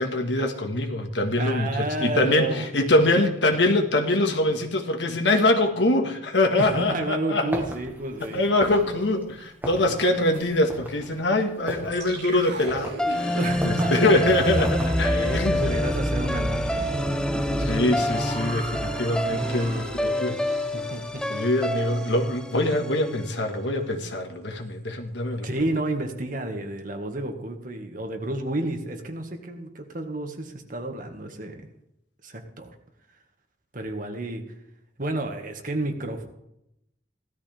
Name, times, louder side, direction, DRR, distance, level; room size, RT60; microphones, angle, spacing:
voice 1, 0.0-7.5 8.3-13.4 13.6-15.7 17.7-20.3 21.3-25.5, left 1 dB, 85° left, 4 dB, 1.8 m, -24 dB
voice 2, 1.4-2.7 3.0-3.1 6.6-8.4 9.7-10.0 13.2-14.0 14.6-18.0 18.9-21.2 25.4-31.6 32.2-32.7 33.7-34.4 35.0-36.3, right 2 dB, 50° right, 4 dB, 1.9 m, -31 dB
sound 1, 7.5-15.4, equal, 10° right, 1.8 m, -38 dB
sound 2, 11.9-20.9 21.2-21.4 21.8-22.2, equal, 70° right, 4.5 m, -32 dB
sound 3, 13.0-23.3, equal, 5° left, 0.6 m, -28 dB
16.5 x 13.0 x 3.5 m, 0.82 s
head